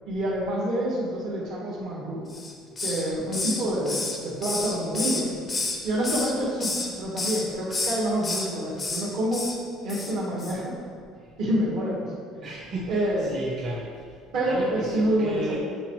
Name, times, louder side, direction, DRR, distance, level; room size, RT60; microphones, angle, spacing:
voice 1, 0.0-2.2 2.8-5.3 5.8-9.5 9.8-10.7 11.4-12.1 12.9-13.4 14.3-15.6, right 1 dB, 50° right, -4 dB, 1.4 m, -27 dB
Hiss, 2.3-3.1 3.3-5.8 6.0-6.9 7.2-7.4 7.7-8.5 8.8-9.0 9.3-9.6 9.9-10.1 10.4-10.6, left 3 dB, 15° left, 0.6 m, -30 dB
voice 2, 12.4-15.6, right 2 dB, 35° right, -8 dB, 1.2 m, -34 dB
7.9 x 4.4 x 3.1 m, 2.1 s
cardioid pair, 175°, 0 cm